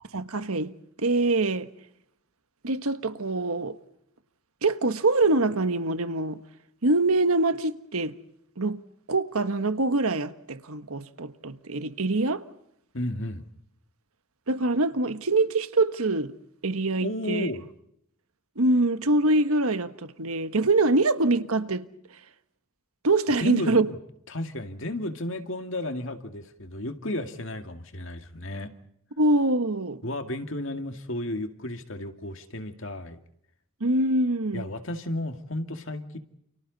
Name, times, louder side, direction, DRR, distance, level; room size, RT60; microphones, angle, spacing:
voice 1, 0.1-0.7 1.0-1.7 2.6-3.8 4.6-6.4 6.8-8.1 8.6-8.8 9.1-12.4 14.5-16.3 16.6-17.5 18.6-21.8 23.0-23.9 29.2-30.0 33.8-34.7, right 2 dB, 80° right, 1.4 m, -24 dB
voice 2, 12.9-13.4 17.0-17.7 23.4-23.9 24.3-28.7 30.0-33.2 34.5-36.2, left 1 dB, 60° left, 2.2 m, -33 dB
30.0 x 29.5 x 4.1 m
head